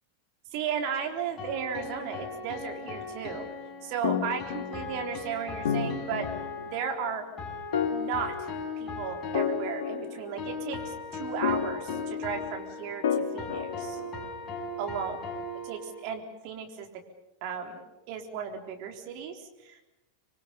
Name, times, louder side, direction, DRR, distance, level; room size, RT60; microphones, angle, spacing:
voice 1, 0.5-3.5 3.8-6.3 6.7-7.2 7.9-8.5 8.8-13.0 13.3-14.0 14.8-15.2 15.7-16.9 17.4-19.8, right 7 dB, 45° right, 4 dB, 3.8 m, -35 dB
sound 1, 0.7-16.1, left 3 dB, 25° left, 7.2 m, -39 dB
sound 2, 4.0-5.2 5.6-6.8 7.7-8.9 9.3-10.7 11.4-12.6 13.0-14.4, left 7 dB, 60° left, 2.4 m, -32 dB
26.5 x 23.5 x 7.0 m, 0.96 s
figure-of-eight pair, 90°, 0 cm